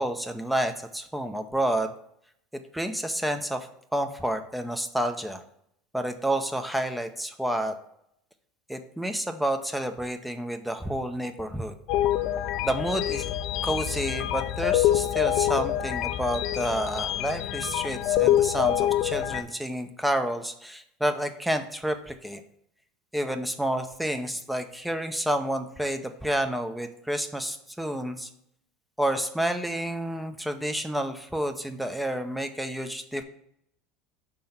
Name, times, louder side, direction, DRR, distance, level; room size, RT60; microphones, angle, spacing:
voice 1, 0.0-1.9 2.7-3.7 3.9-5.4 5.9-7.7 8.7-11.7 12.6-13.3 13.6-22.4 23.1-28.3 29.0-33.2, right 1 dB, 5° right, 6 dB, 0.6 m, -29 dB
sound 1, 11.9-19.4, left 12 dB, 60° left, 0.4 m, -26 dB
5.1 x 3.8 x 5.7 m, 0.73 s
hypercardioid pair, 90°, 0 cm